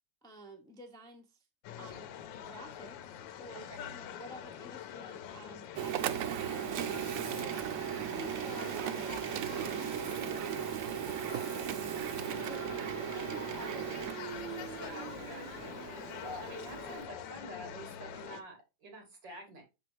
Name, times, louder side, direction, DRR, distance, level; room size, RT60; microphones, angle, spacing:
voice 1, 0.2-1.4 1.8-2.1 2.3-7.7 8.1-9.2 9.5-11.7 12.3-14.3, right 1 dB, 5° left, 0.7 m, -51 dB
sound 1, 1.6-18.4, left 9 dB, 85° left, 1.4 m, -45 dB
voice 2, 3.5-3.9 7.9-8.4 14.8-19.6, right 1 dB, 70° right, 2.8 m, -48 dB
Printer, 5.7-17.0, right 10 dB, 85° right, 0.7 m, -37 dB
6.2 x 5.0 x 3.1 m
omnidirectional pair, 2.0 m